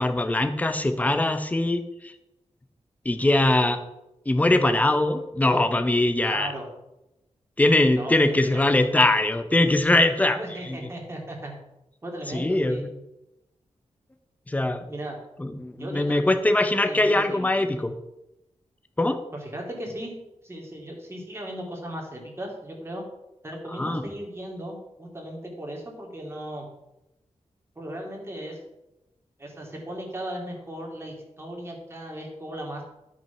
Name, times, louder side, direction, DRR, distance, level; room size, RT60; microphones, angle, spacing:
voice 1, 0.0-2.1 3.0-3.8 4.3-6.5 7.6-10.4 10.6-10.8 12.3-12.9 14.5-14.9 15.4-17.9 19.0-19.2 23.7-24.1, left 2 dB, 15° left, 7 dB, 0.9 m, -22 dB
voice 2, 6.2-6.7 8.0-8.8 10.3-11.5 12.0-12.8 14.8-15.2 15.7-17.8 19.3-20.1 20.4-23.0 23.4-26.7 27.7-28.6 29.4-32.8, right 1 dB, 20° right, 0 dB, 2.8 m, -37 dB
12.5 x 6.3 x 5.9 m, 0.91 s
wide cardioid pair, 165°, 12 cm